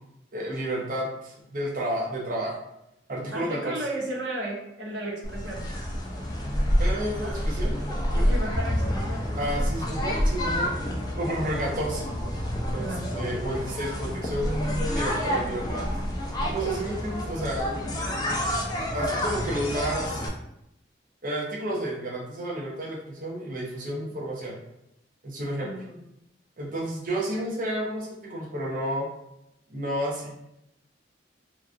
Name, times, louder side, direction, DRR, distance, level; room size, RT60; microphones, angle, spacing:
voice 1, 0.3-2.6 3.1-3.8 6.8-7.8 8.1-8.3 9.4-10.7 11.2-12.1 12.7-15.9 16.5-17.8 18.9-20.1 21.2-24.6 25.2-25.7 26.6-29.1 29.7-30.4, right 1 dB, 45° right, -3 dB, 0.6 m, -31 dB
voice 2, 3.3-5.7 7.2-7.4 8.2-9.6 12.8-13.1 17.8-18.2 25.6-26.0, right 1 dB, 70° right, -3 dB, 0.9 m, -34 dB
sound 1, 5.2-20.3, equal, 20° left, 0.4 m, -28 dB
3.0 x 2.4 x 2.4 m, 0.83 s
head